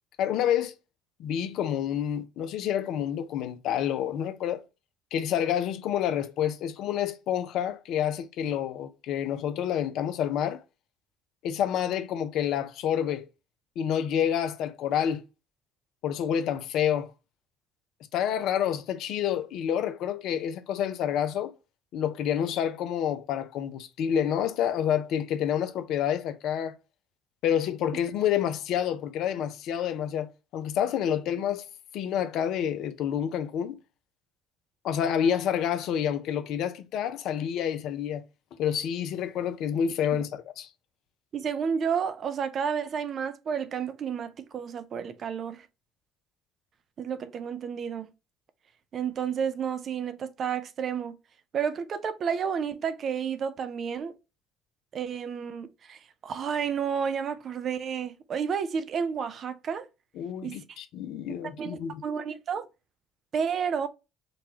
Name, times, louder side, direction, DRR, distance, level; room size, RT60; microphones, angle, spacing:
voice 1, 0.2-0.7 1.2-4.6 5.1-10.6 11.4-13.3 13.8-15.2 16.0-17.1 18.1-21.5 21.9-26.7 27.4-31.6 31.9-33.8 34.8-38.2 38.6-40.3 40.6-40.7 60.2-62.0, left 9 dB, 60° left, 0.4 m, -28 dB
voice 2, 41.3-45.7 47.0-48.1 48.9-51.2 51.5-54.1 54.9-59.9 60.4-60.8 61.3-62.7 63.3-63.9, right 7 dB, 45° right, 0.4 m, -31 dB
2.9 x 2.2 x 2.9 m
figure-of-eight pair, 55°, 0 cm